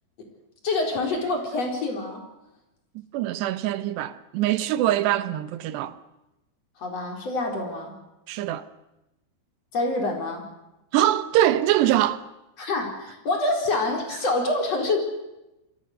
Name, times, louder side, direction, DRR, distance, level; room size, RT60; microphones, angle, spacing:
voice 1, 0.6-2.2 6.8-8.0 9.7-10.4 12.6-15.1, left 2 dB, 35° left, 5.0 m, -26 dB
voice 2, 3.0-6.0 8.3-8.6 10.9-12.3, right 13 dB, 75° right, 3.1 m, -23 dB
29.0 x 23.5 x 6.7 m
omnidirectional pair, 5.1 m